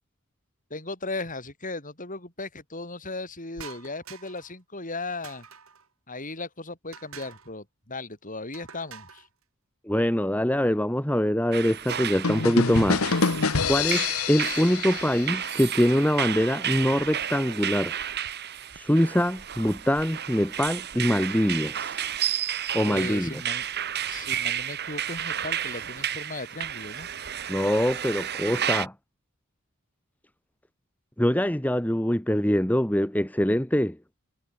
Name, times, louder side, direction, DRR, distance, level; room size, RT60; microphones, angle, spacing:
voice 1, 0.7-5.5 6.1-9.2 22.8-23.6 24.1-27.1, left 3 dB, 40° left, 7.6 m, -37 dB
sound 1, 3.6-4.5 5.2-5.9 6.9-7.5 8.5-9.3, right 6 dB, 70° right, 5.0 m, -46 dB
voice 2, 9.8-13.1 13.6-17.9 18.7-22.3 22.7-23.4 27.5-28.9 31.2-34.0, equal, 5° left, 1.7 m, -24 dB
sound 2, 11.5-28.9, right 10 dB, 50° right, 1.4 m, -32 dB
sound 3, 12.2-16.0, left 5 dB, 80° left, 1.2 m, -27 dB
head